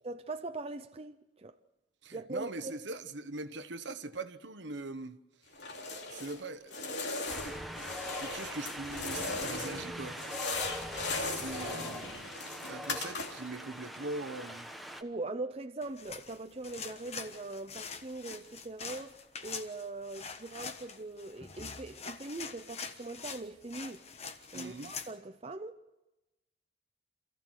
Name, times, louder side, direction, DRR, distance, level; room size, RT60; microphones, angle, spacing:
voice 1, 0.0-1.6 2.1-2.8 15.0-24.0 24.5-25.8, right 2 dB, 30° right, 0.6 m, -41 dB
voice 2, 2.0-5.2 6.1-6.8 8.2-10.2 11.1-12.4 12.7-14.7 24.5-24.9, right 3 dB, 70° right, 1.1 m, -41 dB
sound 1, 5.5-6.4 6.7-9.9 10.1-13.6, left 3 dB, 65° left, 2.7 m, -38 dB
Wind, 7.3-15.0, equal, ahead, 1.1 m, -42 dB
sound 2, 15.8-25.1, left 5 dB, 35° left, 1.2 m, -44 dB
28.0 x 15.0 x 6.4 m
head